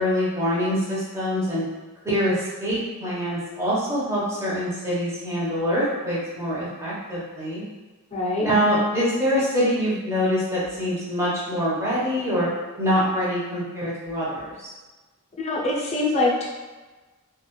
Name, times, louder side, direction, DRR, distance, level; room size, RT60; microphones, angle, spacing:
voice 1, 0.0-1.6 2.0-7.6 8.4-12.5 12.8-14.7, equal, 10° right, -8 dB, 0.7 m, -24 dB
voice 2, 8.1-8.5 15.4-16.5, left 2 dB, 30° left, -4 dB, 0.5 m, -24 dB
2.4 x 2.3 x 2.9 m, 1.2 s
head